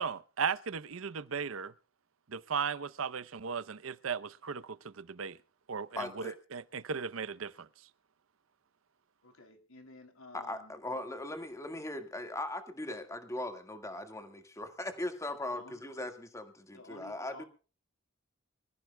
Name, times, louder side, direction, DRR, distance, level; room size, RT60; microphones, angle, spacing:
voice 1, 0.0-1.7 2.3-5.4 5.7-6.2 6.5-7.7, right 6 dB, 75° right, 0.7 m, -36 dB
voice 2, 6.0-6.4 10.3-17.4, left 1 dB, 15° left, 1.7 m, -39 dB
voice 3, 9.2-10.7 15.5-15.8 16.7-17.5, left 3 dB, 85° left, 3.1 m, -52 dB
26.0 x 15.0 x 2.2 m
head